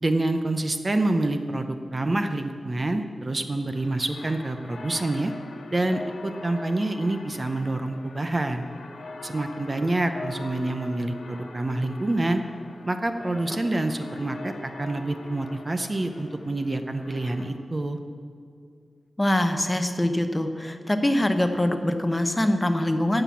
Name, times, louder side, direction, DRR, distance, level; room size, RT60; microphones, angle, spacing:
voice 1, 0.0-5.3 5.7-8.6 9.2-12.4 12.9-18.0, right 2 dB, 25° right, 7 dB, 0.6 m, -27 dB
sound 1, 3.7-17.5, left 3 dB, 80° left, 1.2 m, -43 dB
voice 2, 19.2-23.2, left 1 dB, 15° left, 7 dB, 0.7 m, -23 dB
15.5 x 5.9 x 8.4 m, 2.2 s
wide cardioid pair, 160°, 0 cm